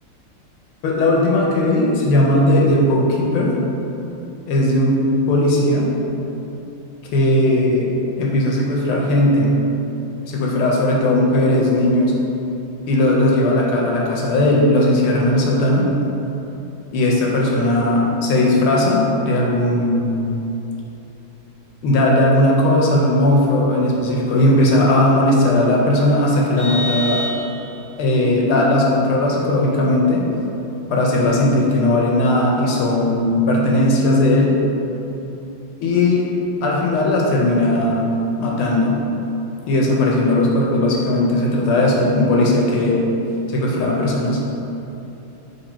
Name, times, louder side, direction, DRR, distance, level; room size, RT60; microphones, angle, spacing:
voice 1, 0.8-3.6 4.5-5.9 7.1-7.9 8.2-9.5 10.3-12.1 12.9-15.9 16.9-20.3 21.8-27.2 28.0-30.3 30.9-34.5 35.8-36.3 36.6-38.1 38.4-39.0 39.7-43.0 43.5-44.4, left 1 dB, 75° left, -2 dB, 1.4 m, -17 dB
Vehicle horn car horn honking, 26.6-28.0, left 1 dB, 75° right, 1.6 m, -27 dB
3.9 x 3.1 x 4.2 m, 2.9 s
omnidirectional pair, 2.4 m